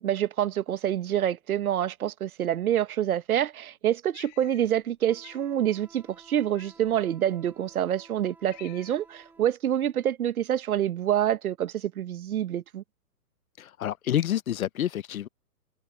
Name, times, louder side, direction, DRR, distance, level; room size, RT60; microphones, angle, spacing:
voice 1, 0.0-12.8, right 11 dB, 70° right, 1.1 m, -27 dB
Cat, 4.1-4.9 5.2-5.5 6.5-7.1 7.8-7.9 8.2-9.2, left 27 dB, 30° left, 5.2 m, -51 dB
Wind instrument woodwind instrument, 5.0-9.5, right 3 dB, 5° right, 2.8 m, -55 dB
voice 2, 13.6-15.3, left 11 dB, 65° left, 0.8 m, -28 dB
hypercardioid pair, 160°, 45 cm